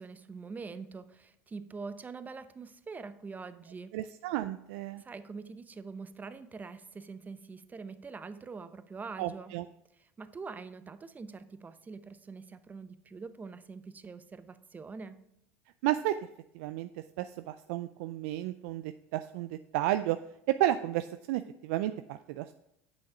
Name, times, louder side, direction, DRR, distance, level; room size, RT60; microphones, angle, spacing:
voice 1, 0.0-3.9 4.9-9.5 10.0-15.2, right 4 dB, 25° right, 12 dB, 0.7 m, -44 dB
voice 2, 3.9-5.0 9.2-9.7 15.8-16.2 16.5-16.9 17.2-20.2 20.5-22.5, right 14 dB, 75° right, 10 dB, 0.4 m, -32 dB
8.5 x 6.4 x 4.8 m, 0.80 s
hypercardioid pair, 85°, 7 cm